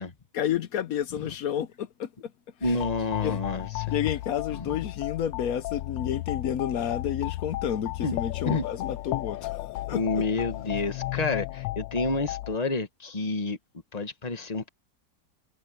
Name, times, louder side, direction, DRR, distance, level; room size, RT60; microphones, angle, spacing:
voice 1, 0.3-2.1 2.6-2.8 3.2-3.4 3.9-10.2, left 9 dB, 60° left, 1.0 m, -30 dB
sound 1, 2.6-12.6, left 17 dB, 85° left, 1.3 m, -34 dB
voice 2, 2.6-3.9 4.5-4.8 8.0-8.1 8.4-8.6 9.9-13.6 13.9-14.7, left 3 dB, 25° left, 1.4 m, -29 dB
omnidirectional pair, 1.9 m